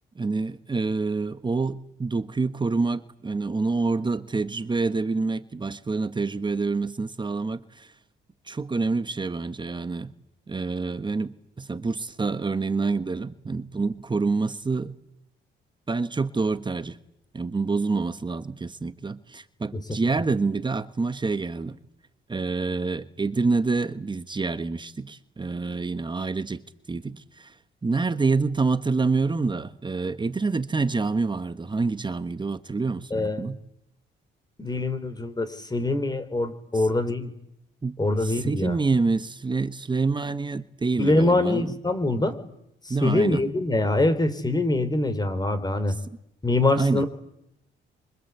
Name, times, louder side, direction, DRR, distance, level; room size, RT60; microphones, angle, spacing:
voice 1, 0.1-7.9 8.5-10.1 10.5-14.9 15.9-17.0 17.3-21.8 22.3-26.6 26.9-27.5 27.8-33.6 36.7-36.8 37.8-41.7 42.9-43.4 46.8-47.0, right 4 dB, 25° right, 1.3 m, -27 dB
voice 2, 33.1-33.4 34.6-37.3 38.0-38.8 41.0-42.4 42.9-46.0 46.4-47.1, left 2 dB, 20° left, 3.6 m, -24 dB
27.0 x 25.5 x 8.2 m
cardioid pair, 90°, 20 cm